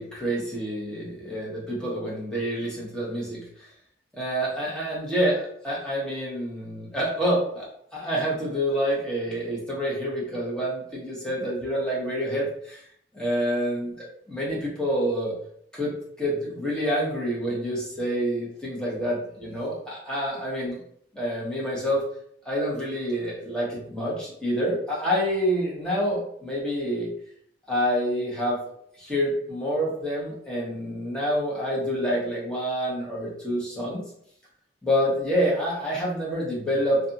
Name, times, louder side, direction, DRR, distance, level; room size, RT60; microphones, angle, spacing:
voice 1, 0.0-3.7 4.1-12.9 13.1-15.3 15.7-20.8 21.1-22.0 22.4-27.1 27.7-28.6 29.0-34.0 34.8-37.0, equal, 5° left, -6 dB, 0.9 m, -27 dB
2.5 x 2.4 x 2.7 m, 0.67 s
head